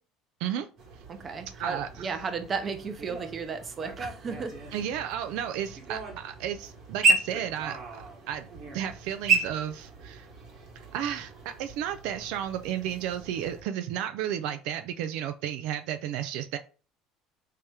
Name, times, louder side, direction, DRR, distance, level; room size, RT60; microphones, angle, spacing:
sound 1, 0.8-13.6, right 3 dB, 50° right, 1.3 m, -33 dB
voice 1, 1.1-4.8, right 5 dB, 35° right, 0.6 m, -34 dB
voice 2, 1.6-2.1 4.7-7.8 8.3-8.5 8.7-10.3 10.9-16.6, right 10 dB, 75° right, 0.3 m, -33 dB
3.4 x 2.8 x 3.3 m
supercardioid pair, 110°, 0 cm